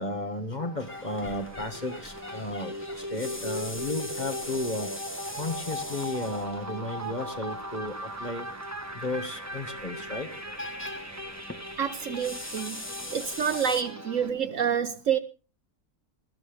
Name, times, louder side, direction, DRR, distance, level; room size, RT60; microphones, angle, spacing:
voice 1, 0.0-4.9 5.3-8.5 8.9-10.3, left 2 dB, 30° left, 7 dB, 1.7 m, -34 dB
sound 1, 0.6-14.3, equal, 10° right, 1.1 m, -39 dB
sound 2, 0.8-13.8, left 1 dB, 10° left, 1.0 m, -42 dB
voice 2, 11.8-12.8 13.1-15.2, right 8 dB, 60° right, 11 dB, 1.2 m, -28 dB
20.0 x 13.5 x 3.4 m, 0.33 s
omnidirectional pair, 1.7 m